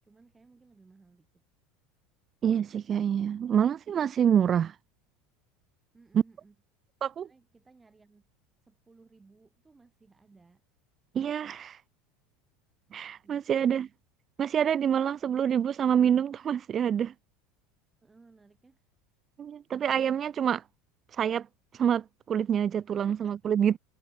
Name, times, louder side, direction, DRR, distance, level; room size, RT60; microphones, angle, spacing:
voice 1, 0.0-1.3 5.9-6.6 7.2-8.3 8.6-10.6 13.2-13.7 18.0-18.8 22.8-23.5, right 3 dB, 15° right, 5.6 m, -59 dB
voice 2, 2.4-4.7 7.0-7.3 11.1-11.8 12.9-13.9 14.4-17.1 19.4-20.6 21.1-21.5 21.7-23.8, right 8 dB, 35° right, 0.4 m, -26 dB
supercardioid pair, 100°, 0 cm